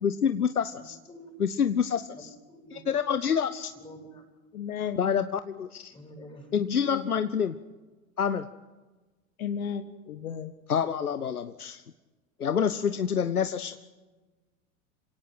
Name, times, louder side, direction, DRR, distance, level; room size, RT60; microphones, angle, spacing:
voice 1, 0.0-1.0 1.4-2.3 2.7-3.7 5.0-5.9 6.5-7.5 8.2-8.5 10.7-11.8 12.4-13.8, left 7 dB, 90° left, 12 dB, 0.8 m, -27 dB
voice 2, 0.7-1.4 2.1-2.8 3.7-4.2 5.9-6.6, right 1 dB, 10° left, 1 dB, 7.7 m, -48 dB
voice 3, 4.5-5.1 6.6-7.1 9.4-10.5, left 7 dB, 70° left, 10 dB, 1.4 m, -34 dB
26.5 x 17.5 x 5.9 m, 1.2 s
figure-of-eight pair, 90°, 44 cm